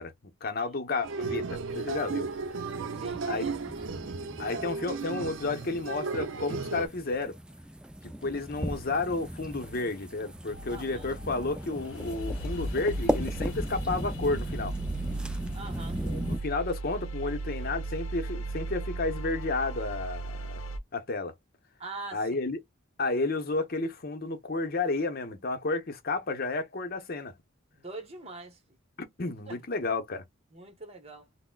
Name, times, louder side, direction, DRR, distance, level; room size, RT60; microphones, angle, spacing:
voice 1, 0.0-2.3 3.3-3.5 4.4-7.4 8.2-14.7 16.0-20.6 20.9-21.3 22.1-22.6 23.0-27.3 29.0-30.2, left 3 dB, 45° left, 0.8 m, -32 dB
sound 1, 1.0-6.9, right 4 dB, 70° right, 0.5 m, -34 dB
sound 2, 1.7-16.4, equal, 5° right, 0.3 m, -38 dB
voice 2, 2.9-4.0 10.7-11.0 15.5-16.0 21.8-22.3 27.7-28.6 29.5-29.6 30.5-31.3, right 3 dB, 30° right, 1.0 m, -43 dB
sound 3, 10.5-20.8, right 2 dB, 85° left, 0.7 m, -36 dB
5.8 x 2.1 x 2.2 m
head